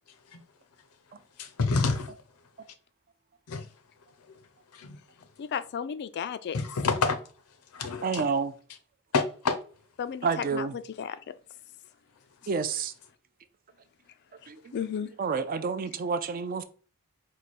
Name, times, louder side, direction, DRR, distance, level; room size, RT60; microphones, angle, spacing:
voice 1, 1.4-2.1 3.5-3.7 4.3-4.4 4.7-5.0 6.5-7.2 7.7-8.3 9.1-9.6, left 4 dB, 85° left, 0.6 m, -28 dB
voice 2, 5.4-6.6 10.0-10.3 10.5-10.6 11.0-11.2 14.7-15.1, left 7 dB, 50° left, 0.3 m, -33 dB
voice 3, 8.0-8.5 10.2-10.8 12.5-12.9 14.5-14.7 15.0-16.6, right 5 dB, 40° right, 0.4 m, -29 dB
4.7 x 2.2 x 4.0 m
head